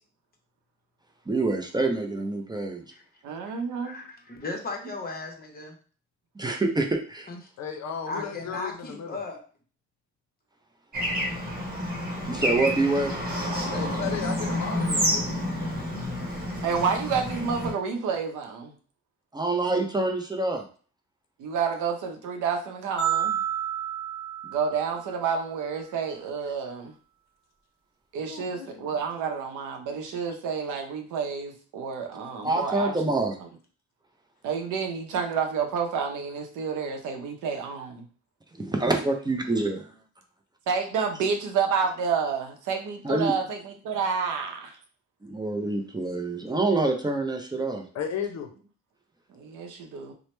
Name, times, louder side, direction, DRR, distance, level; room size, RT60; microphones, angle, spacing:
voice 1, 1.3-2.8 6.4-7.3 12.3-13.1 19.3-20.6 32.4-33.3 38.5-39.8 43.0-43.3 45.2-47.8, right 2 dB, 15° right, 3 dB, 0.5 m, -26 dB
voice 2, 3.2-4.0 16.6-18.7 21.4-23.4 24.5-26.9 28.1-32.9 34.4-38.0 40.7-44.8 49.3-50.1, right 6 dB, 85° right, 4 dB, 0.7 m, -29 dB
voice 3, 3.8-5.8 7.3-7.4 8.1-9.4 25.9-26.1, left 3 dB, 30° left, 2 dB, 0.8 m, -36 dB
voice 4, 7.6-9.2 13.7-15.3 28.2-29.0 47.9-48.5, left 7 dB, 65° left, 5 dB, 0.6 m, -35 dB
Bird / Traffic noise roadway noise, 10.9-17.7, equal, 30° right, 1.0 m, -29 dB
sound 1, 23.0-25.3, right 10 dB, 15° left, 1.2 m, -30 dB
2.9 x 2.1 x 3.1 m, 0.41 s
cardioid pair, 90°, 30 cm